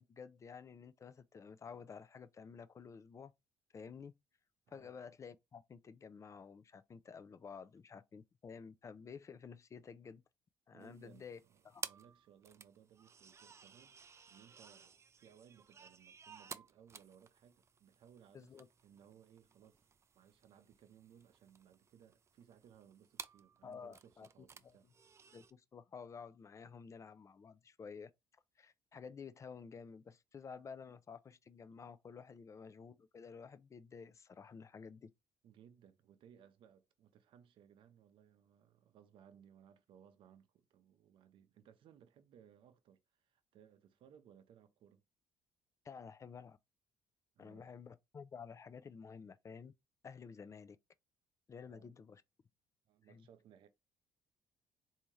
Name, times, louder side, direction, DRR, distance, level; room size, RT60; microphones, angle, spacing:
voice 1, 0.0-3.3 3.7-4.1 4.7-10.2 10.7-11.4 11.6-11.8 18.3-18.7 23.6-24.3 24.6-24.8 25.3-28.1 28.6-35.1 45.8-46.6 47.4-49.7 50.0-50.8 51.5-52.2 53.1-53.3, left 6 dB, 35° left, 0.4 m, -52 dB
voice 2, 10.7-13.9 14.3-24.9 32.3-32.4 35.4-45.0 47.4-47.7 51.6-52.0 52.9-53.7, right 9 dB, 70° right, 0.6 m, -63 dB
sound 1, 10.8-25.5, right 6 dB, 30° right, 0.4 m, -55 dB
3.5 x 2.7 x 3.1 m
cardioid pair, 85°, 9 cm